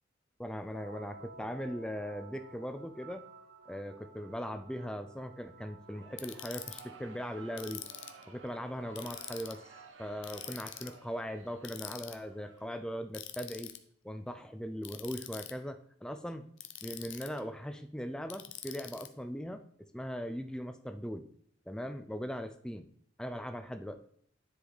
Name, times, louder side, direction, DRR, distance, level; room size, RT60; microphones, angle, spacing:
voice 1, 0.4-3.3 3.7-7.8 8.3-9.7 10.0-13.7 14.0-16.4 16.8-19.6 19.9-21.3 21.7-22.9 23.2-24.0, equal, 5° left, 9 dB, 0.4 m, -39 dB
sound 1, 0.7-9.9, right 3 dB, 55° right, 0.7 m, -54 dB
sound 2, 5.8-13.1, right 3 dB, 75° right, 1.1 m, -56 dB
Ratchet pawl, 6.2-6.8 7.6-8.2 9.0-9.6 10.2-10.9 11.6-12.1 13.1-13.8 14.8-15.5 16.6-17.4 18.3-19.1, left 12 dB, 70° left, 0.7 m, -44 dB
10.0 x 4.9 x 4.0 m, 0.63 s
head